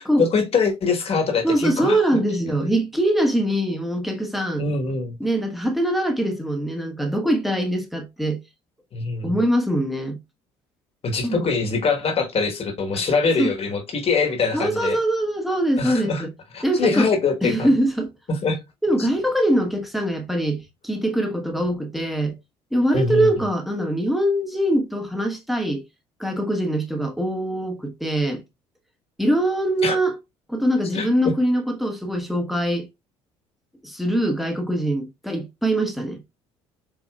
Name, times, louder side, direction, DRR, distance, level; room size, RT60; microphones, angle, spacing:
voice 1, 0.2-2.0 4.6-5.2 8.9-9.4 11.0-15.0 15.8-16.2 16.5-17.7 18.3-18.6 22.9-23.3 29.8-30.0 30.9-31.1, left 4 dB, 45° left, 1.3 m, -23 dB
voice 2, 1.4-4.6 5.2-8.4 9.2-10.2 11.2-11.5 12.9-13.0 13.4-13.5 14.5-16.3 16.6-17.1 17.4-18.1 18.8-22.3 22.7-25.8 26.2-28.4 29.2-30.2 30.5-32.9 33.8-36.2, right 1 dB, ahead, 1.1 m, -23 dB
4.7 x 2.9 x 2.3 m
hypercardioid pair, 60°, 14 cm